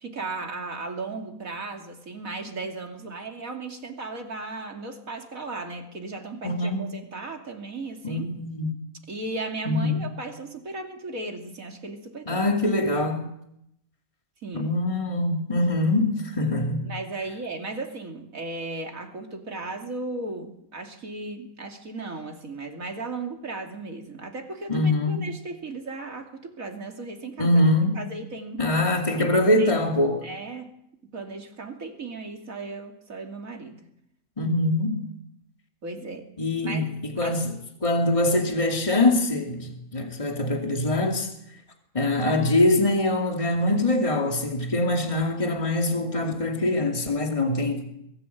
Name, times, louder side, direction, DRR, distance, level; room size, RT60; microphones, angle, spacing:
voice 1, 0.0-8.3 9.1-12.4 14.4-14.7 16.8-27.6 27.9-28.6 29.2-29.7 30.2-30.7 31.1-33.9 35.8-36.3 36.6-36.9 37.2-37.4, right 3 dB, 70° right, 3.1 m, -36 dB
voice 2, 6.4-6.8 8.0-8.7 9.7-10.1 12.3-13.2 14.5-16.8 24.7-25.3 27.4-28.0 28.6-30.2 34.4-35.1 36.4-37.6 37.8-41.3 41.9-47.8, left 2 dB, 20° left, 2.6 m, -23 dB
23.0 x 15.0 x 8.2 m
omnidirectional pair, 1.5 m